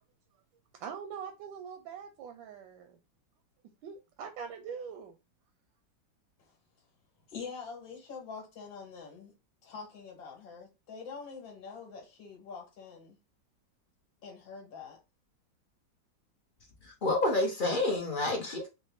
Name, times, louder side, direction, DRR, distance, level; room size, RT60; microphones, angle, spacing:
voice 1, 0.8-3.0 3.8-5.2, right 7 dB, 85° right, 1.3 m, -43 dB
voice 2, 7.3-9.3 9.6-13.2 14.2-15.0, left 5 dB, 85° left, 2.0 m, -45 dB
voice 3, 16.8-18.7, left 2 dB, 40° left, 0.8 m, -29 dB
4.7 x 2.3 x 3.5 m
omnidirectional pair, 2.0 m